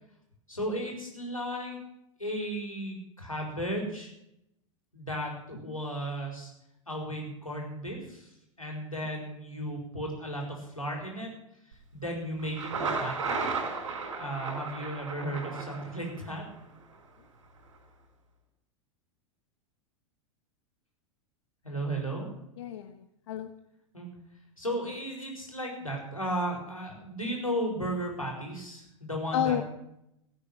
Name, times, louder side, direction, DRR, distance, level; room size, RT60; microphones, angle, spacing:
voice 1, 0.5-1.8 2.2-4.1 4.9-6.5 6.9-8.3 8.6-11.3 11.9-13.6 14.2-16.5 21.6-22.3 23.9-24.1 24.6-29.6, right 1 dB, 90° left, 0 dB, 4.5 m, -35 dB
Thunder, 12.4-16.4, right 4 dB, 65° right, 5.4 m, -34 dB
voice 2, 22.6-23.5 29.3-29.6, left 10 dB, 60° left, 8 dB, 1.1 m, -31 dB
16.5 x 8.8 x 8.9 m, 0.81 s
figure-of-eight pair, 90°, 17 cm